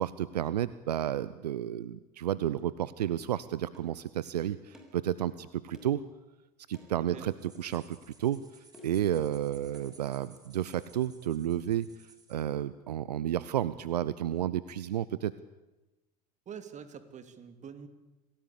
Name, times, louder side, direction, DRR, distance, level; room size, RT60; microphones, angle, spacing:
voice 1, 0.0-6.0 6.7-8.4 8.8-11.9 12.3-15.3, right 11 dB, 75° right, 17 dB, 0.7 m, -31 dB
sound 1, 3.7-3.9 4.7-5.0 5.7-6.0 6.7-6.9 7.7-7.9 8.7-9.1 9.7-9.9 10.7-10.9, left 2 dB, ahead, 6.4 m, -53 dB
voice 2, 7.0-7.3 16.5-17.9, right 7 dB, 35° right, 10 dB, 2.9 m, -45 dB
sound 2, 7.3-12.5, right 3 dB, 20° right, 4.7 m, -59 dB
27.0 x 18.0 x 8.6 m, 1.1 s
figure-of-eight pair, 75°, 21 cm